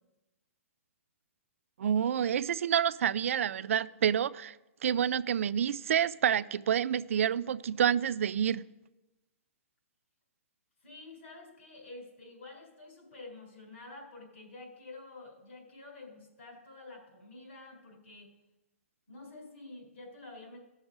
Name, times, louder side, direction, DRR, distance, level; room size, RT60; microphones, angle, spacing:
voice 1, 1.8-4.6 4.8-8.6, right 9 dB, 70° right, 0.4 m, -28 dB
voice 2, 10.8-18.3 19.1-20.6, left 2 dB, 65° left, 4.0 m, -49 dB
16.0 x 6.3 x 5.0 m
hypercardioid pair, 155°, 8 cm